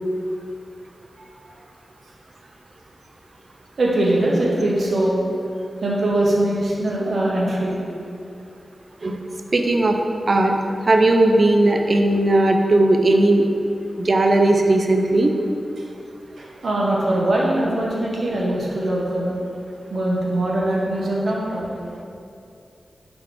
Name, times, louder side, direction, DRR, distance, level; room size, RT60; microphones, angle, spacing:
voice 1, 3.8-5.2 5.8-7.8 15.8-15.9 16.4-19.3 19.9-21.8, right 1 dB, 75° right, -4 dB, 0.7 m, -22 dB
voice 2, 9.5-10.0 10.3-10.5 10.8-13.4 14.0-15.3, right 2 dB, 55° right, 4 dB, 0.3 m, -17 dB
3.7 x 2.9 x 3.6 m, 2.5 s
cardioid pair, 50°, 0 cm